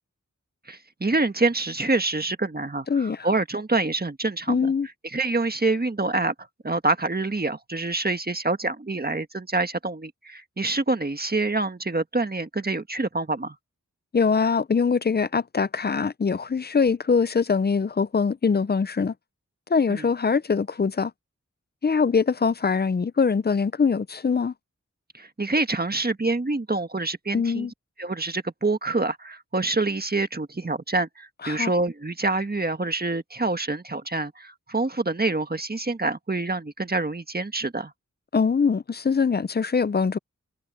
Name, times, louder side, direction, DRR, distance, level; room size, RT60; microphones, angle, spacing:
voice 1, 0.7-4.7 5.0-6.3 6.6-13.5 19.9-20.1 25.1-27.7 28.0-37.9, right 2 dB, 30° right, 1.5 m, -26 dB
voice 2, 2.9-3.3 4.5-4.9 14.1-19.1 19.7-21.1 21.8-24.5 27.3-27.7 31.4-31.7 38.3-40.2, left 5 dB, 35° left, 0.5 m, -23 dB
wide cardioid pair, 55°, 30 cm